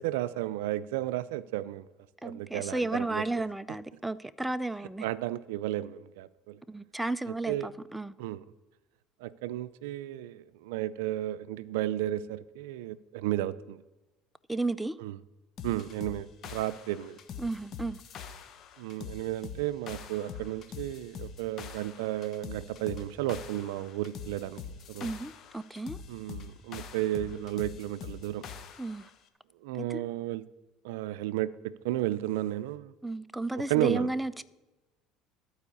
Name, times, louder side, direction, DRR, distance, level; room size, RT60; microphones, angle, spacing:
voice 1, 0.0-1.8 2.2-3.2 5.0-6.6 7.3-7.7 8.2-8.4 9.2-13.8 15.0-15.1 15.6-17.2 18.8-24.6 24.9-25.1 26.1-28.5 29.6-30.4 30.8-32.9 33.7-34.1, right 14 dB, 85° right, 0.4 m, -33 dB
voice 2, 2.2-5.1 6.7-8.1 14.5-15.0 17.4-18.0 25.0-26.0 28.8-29.1 29.7-30.0 33.0-34.4, right 2 dB, 5° right, 0.4 m, -33 dB
sound 1, 15.6-29.1, left 6 dB, 50° left, 1.0 m, -44 dB
13.5 x 4.7 x 8.4 m
supercardioid pair, 105°, 0 cm